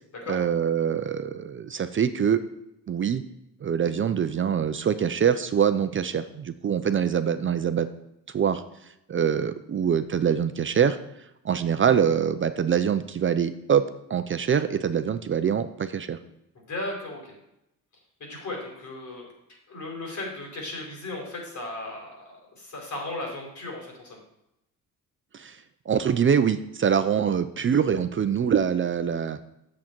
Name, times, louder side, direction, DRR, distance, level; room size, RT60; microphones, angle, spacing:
voice 1, 0.3-2.4 2.9-3.2 3.6-7.9 8.3-8.6 9.1-11.0 11.4-13.8 14.1-16.2 25.3-25.6 25.9-29.4, right 8 dB, 35° right, 10 dB, 0.6 m, -24 dB
voice 2, 16.6-17.4 18.2-19.3 19.7-24.2, left 2 dB, 55° left, -1 dB, 4.1 m, -36 dB
8.9 x 7.3 x 4.5 m, 0.85 s
cardioid pair, 105°, 34 cm